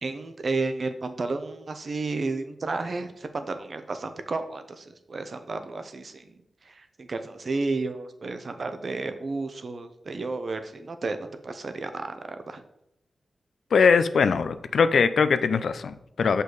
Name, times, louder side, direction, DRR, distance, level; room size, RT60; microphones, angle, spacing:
voice 1, 0.0-6.4 6.6-12.6, right 3 dB, 55° right, 8 dB, 0.8 m, -32 dB
voice 2, 13.7-16.4, left 5 dB, 80° left, 12 dB, 0.4 m, -21 dB
6.3 x 5.4 x 4.0 m, 0.81 s
cardioid pair, 75°, 0 cm